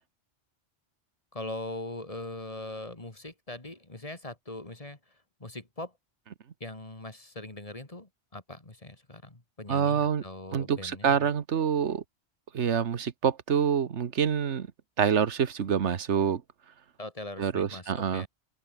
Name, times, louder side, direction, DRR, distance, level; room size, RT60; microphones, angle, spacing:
voice 1, 1.3-5.0 5.4-5.9 6.6-11.3 17.0-18.3, left 2 dB, 30° left, 2.7 m, -41 dB
voice 2, 9.7-10.2 10.5-12.0 12.5-14.7 15.0-16.4 17.4-18.2, right 7 dB, 90° right, 1.4 m, -26 dB
open air
omnidirectional pair, 1.1 m